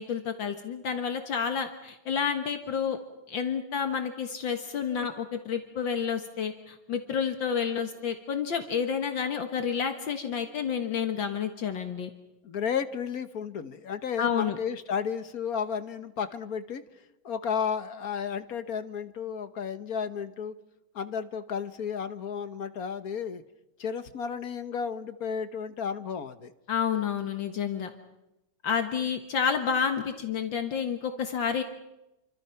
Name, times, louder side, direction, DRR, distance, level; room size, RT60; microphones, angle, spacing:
voice 1, 0.0-3.0 3.3-12.1 14.2-14.6 26.7-27.9 28.6-31.6, left 7 dB, 70° left, 6 dB, 2.2 m, -29 dB
voice 2, 12.4-16.8 17.2-20.5 20.9-23.4 23.8-26.5, left 7 dB, 50° left, 11 dB, 1.5 m, -33 dB
29.0 x 25.0 x 5.8 m, 0.92 s
omnidirectional pair, 2.2 m